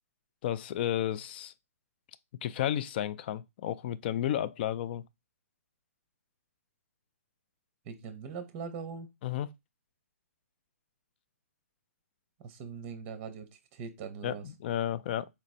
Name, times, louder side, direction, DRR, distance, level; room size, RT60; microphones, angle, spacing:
voice 1, 0.4-1.5 2.4-5.0 9.2-9.5 14.2-15.3, left 11 dB, 40° left, 0.3 m, -32 dB
voice 2, 7.8-9.1 12.4-14.5, right 6 dB, 30° right, 0.6 m, -41 dB
4.2 x 3.0 x 2.5 m
figure-of-eight pair, 130°, 8 cm